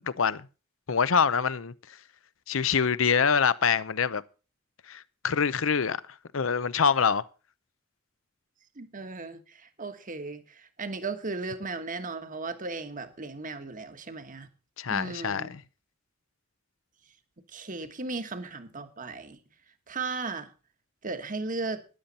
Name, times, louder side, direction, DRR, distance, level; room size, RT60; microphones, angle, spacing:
voice 1, 0.9-1.7 2.5-4.2 4.9-6.0 6.3-7.2 14.8-15.5, left 6 dB, 75° left, 0.7 m, -25 dB
voice 2, 8.7-14.5 14.9-15.5 17.5-19.4 19.9-20.5 21.0-21.9, right 3 dB, 40° right, 1.5 m, -36 dB
13.5 x 10.5 x 4.2 m
head